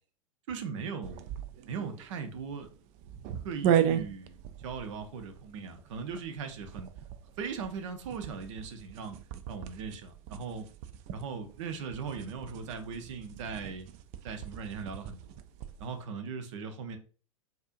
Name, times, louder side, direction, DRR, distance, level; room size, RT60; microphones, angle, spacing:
voice 1, 0.5-1.2 1.7-2.7 3.4-6.9 7.4-9.2 9.5-10.7 11.1-13.9 14.2-15.3 15.8-17.0, right 5 dB, 60° right, 6 dB, 0.8 m, -39 dB
sound 1, 1.0-15.9, right 10 dB, 40° right, 0.4 m, -36 dB
4.2 x 2.7 x 2.5 m, 0.39 s
hypercardioid pair, 100°, 18 cm